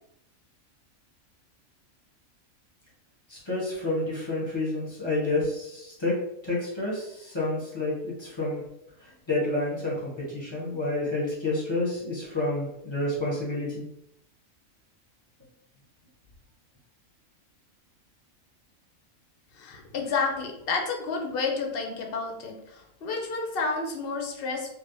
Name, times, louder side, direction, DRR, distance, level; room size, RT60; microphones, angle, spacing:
voice 1, 3.3-6.1 6.4-8.6 9.3-13.8, left 2 dB, 20° left, -6 dB, 1.1 m, -29 dB
voice 2, 19.5-24.7, left 4 dB, 55° left, 2 dB, 0.7 m, -30 dB
3.4 x 2.7 x 2.7 m, 0.80 s
omnidirectional pair, 1.4 m